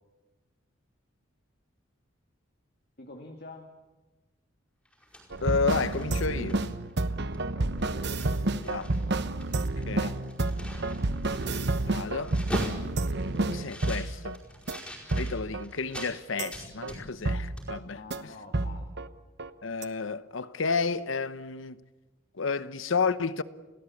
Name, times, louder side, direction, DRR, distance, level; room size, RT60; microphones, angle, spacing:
voice 1, 3.0-3.7 7.5-9.2 9.9-10.2 17.8-18.9, left 2 dB, 50° left, 2.3 m, -47 dB
sound 1, 4.8-6.9 7.3-7.5 7.8-9.0 9.3-16.1 16.5-17.3 17.6-17.7, equal, 5° left, 5.0 m, -42 dB
sound 2, 5.3-14.4 14.7-14.8 15.1-15.6 16.0-16.1 16.4-16.5 16.8-16.9 17.3-17.8 18.1-18.2 18.5-19.1 19.4-19.5 19.8-19.9, right 2 dB, 55° right, 1.0 m, -30 dB
voice 2, 5.4-6.7 8.6-8.9 9.9-10.1 11.8-12.4 13.5-14.4 15.2-18.0 19.6-21.8 22.4-23.4, left 4 dB, 70° left, 0.9 m, -31 dB
28.5 x 18.5 x 8.6 m
head